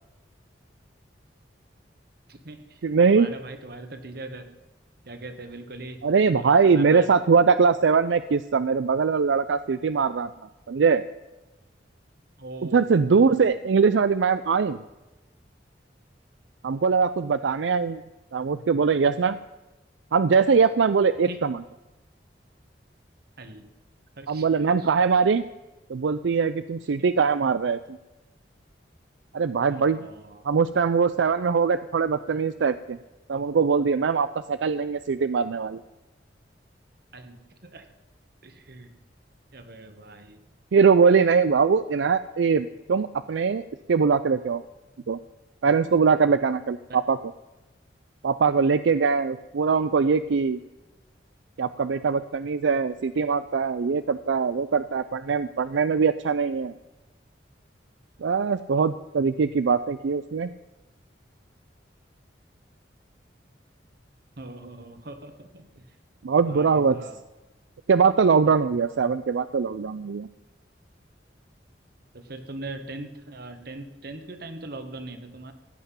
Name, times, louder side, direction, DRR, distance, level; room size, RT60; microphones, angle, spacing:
voice 1, 2.3-4.5 5.0-6.0 6.3-7.1 12.4-13.3 21.3-21.4 23.4-23.7 24.2-25.0 29.7-30.5 37.1-37.9 38.4-38.9 39.5-40.4 46.9-47.0 64.4-65.9 66.4-67.2 72.1-75.5, right 2 dB, 60° right, 8 dB, 1.5 m, -41 dB
voice 2, 2.8-3.3 6.0-10.3 10.7-11.0 12.7-14.8 16.6-18.0 18.3-19.4 20.1-21.6 24.3-25.4 25.9-28.0 29.3-30.1 30.4-33.0 33.3-35.8 40.7-43.6 43.9-44.6 45.1-45.2 45.6-47.2 48.2-50.6 51.6-56.7 58.2-60.5 66.2-67.0 67.9-70.3, right 5 dB, 85° right, 13 dB, 0.4 m, -22 dB
16.0 x 5.9 x 10.0 m, 1.1 s
head